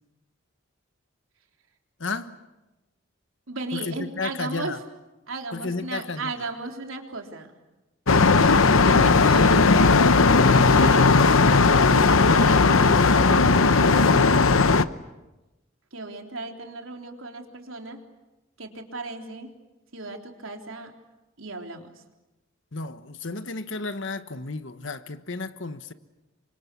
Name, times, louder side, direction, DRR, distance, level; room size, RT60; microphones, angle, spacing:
voice 1, 2.0-2.4 3.7-4.8 5.5-6.5 22.7-25.9, left 3 dB, 65° left, 1.3 m, -33 dB
voice 2, 3.5-4.8 5.3-7.5 8.4-9.9 10.7-11.2 11.9-14.5 15.9-18.0 18.6-19.5 19.9-20.9 21.4-21.9, right 2 dB, 80° right, 3.6 m, -35 dB
sound 1, 8.1-14.8, left 4 dB, 85° left, 0.9 m, -17 dB
28.5 x 25.0 x 8.4 m
head